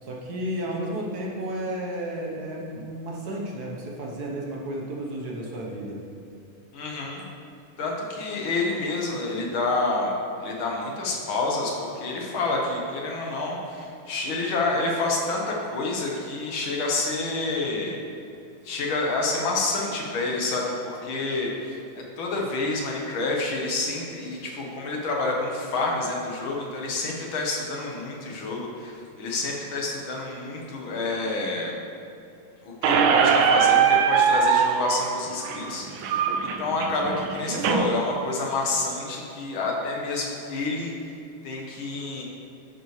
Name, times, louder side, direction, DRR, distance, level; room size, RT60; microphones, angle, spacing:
voice 1, 0.0-6.0, right 1 dB, 55° right, -2 dB, 1.5 m, -32 dB
voice 2, 6.7-7.2 7.8-10.1 10.4-18.0 18.6-21.8 22.2-31.8 32.6-36.3 36.6-40.9 41.4-42.2, left 3 dB, 85° left, -1 dB, 2.1 m, -28 dB
Squeak, 32.8-37.8, right 7 dB, 90° right, 1.4 m, -21 dB
11.0 x 7.0 x 3.2 m, 2.7 s
omnidirectional pair, 2.1 m